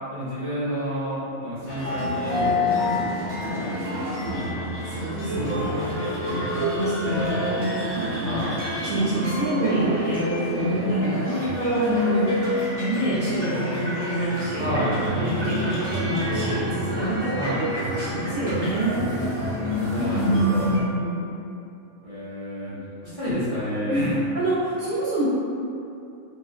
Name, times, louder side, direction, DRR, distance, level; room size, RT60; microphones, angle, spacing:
voice 1, 0.1-4.5 5.3-6.6 7.0-7.5 8.2-8.6 14.6-15.0 17.3-17.7 19.7-20.7 22.0-22.8 23.0-24.2, equal, 35° left, -13 dB, 0.6 m, -30 dB
sound 1, 1.7-20.8, left 1 dB, 25° right, 0.8 m, -27 dB
voice 2, 4.9-5.9 6.5-7.4 8.1-8.4 8.8-14.6 15.2-19.1 20.1-21.3 23.9-24.1 24.3-25.3, right 1 dB, 55° right, -11 dB, 0.6 m, -27 dB
2.8 x 2.4 x 2.4 m, 2.6 s
omnidirectional pair, 1.2 m